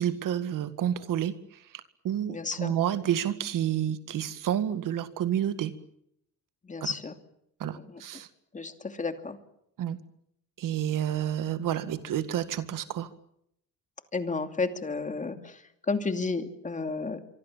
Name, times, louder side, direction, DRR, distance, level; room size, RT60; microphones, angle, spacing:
voice 1, 0.0-1.6 2.0-5.7 6.8-6.9 7.6-8.3 9.8-10.0 10.6-13.1, right 10 dB, 75° right, 12 dB, 2.0 m, -29 dB
voice 2, 2.3-2.7 6.6-7.1 7.6-8.0 8.5-9.4 14.1-15.6 15.9-17.2, left 4 dB, 25° left, 8 dB, 2.6 m, -32 dB
25.0 x 24.5 x 7.4 m, 0.75 s
cardioid pair, 145°, 32 cm